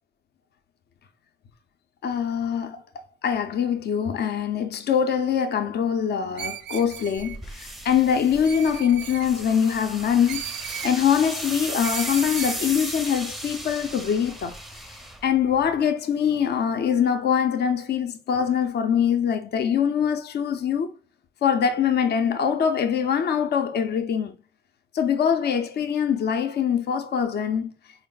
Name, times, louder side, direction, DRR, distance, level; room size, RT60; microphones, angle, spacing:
voice 1, 2.0-10.4 10.8-14.9 15.2-20.9 21.4-24.3 24.9-27.7, left 8 dB, 55° left, 0.6 m, -23 dB
Screech, 6.4-7.4 8.4-9.3 10.3-11.0 11.8-12.6, right 10 dB, 65° right, 0.4 m, -36 dB
sound 1, 7.2-15.8, right 1 dB, ahead, 0.5 m, -36 dB
4.3 x 2.0 x 3.8 m
cardioid pair, 90°, 20 cm